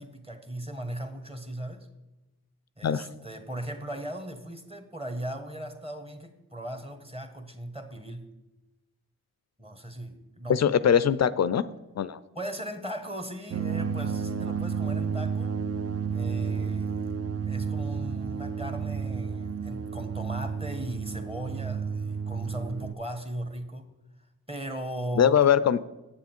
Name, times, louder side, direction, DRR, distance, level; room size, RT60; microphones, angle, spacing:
voice 1, 0.0-1.9 2.8-8.2 9.6-10.6 12.3-15.6 16.1-17.1 17.5-23.9 24.5-25.3, right 1 dB, 15° right, 7 dB, 1.3 m, -38 dB
voice 2, 10.5-11.6 12.0-12.2 25.2-25.9, left 8 dB, 50° left, 16 dB, 0.4 m, -22 dB
sound 1, 13.5-22.9, right 6 dB, 40° right, 0.6 m, -31 dB
7.8 x 7.1 x 4.5 m, 1.0 s
cardioid pair, 45°, 36 cm